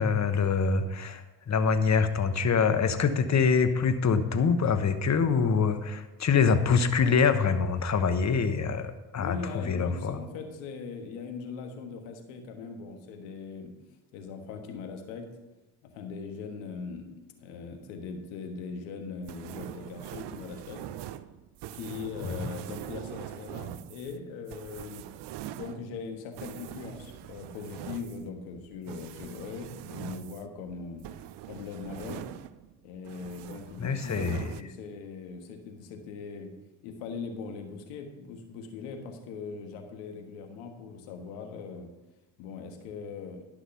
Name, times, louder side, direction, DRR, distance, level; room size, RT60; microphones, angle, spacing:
voice 1, 0.0-9.4 9.7-10.2 22.2-22.3 33.8-34.5, left 5 dB, 35° left, 10 dB, 1.1 m, -25 dB
voice 2, 9.2-13.7 14.1-15.3 15.8-20.8 21.7-25.0 25.4-31.1 31.5-32.2 32.8-36.5 36.8-41.9 42.4-43.4, left 5 dB, 85° left, 5 dB, 1.4 m, -40 dB
sound 1, 19.3-32.8 33.0-34.6, right 12 dB, 65° right, 0.6 m, -43 dB
11.0 x 6.2 x 5.8 m, 1.1 s
hypercardioid pair, 55°, 46 cm